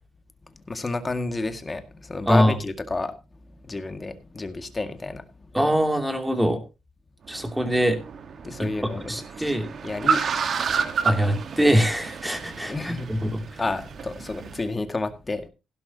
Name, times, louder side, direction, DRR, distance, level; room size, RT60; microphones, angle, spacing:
voice 1, 0.7-3.1 3.6-5.3 8.4-9.6 9.8-10.3 10.7-10.9 12.7-13.2 13.6-15.5, left 3 dB, 25° left, 9 dB, 2.0 m, -30 dB
voice 2, 5.5-6.6 7.3-8.0 8.6-8.7 9.1-9.7 11.0-13.6, equal, 5° right, 6 dB, 2.8 m, -23 dB
Car, 7.3-14.6, right 6 dB, 55° right, 1.4 m, -30 dB
16.0 x 12.0 x 2.9 m, 0.28 s
cardioid pair, 90°, 0 cm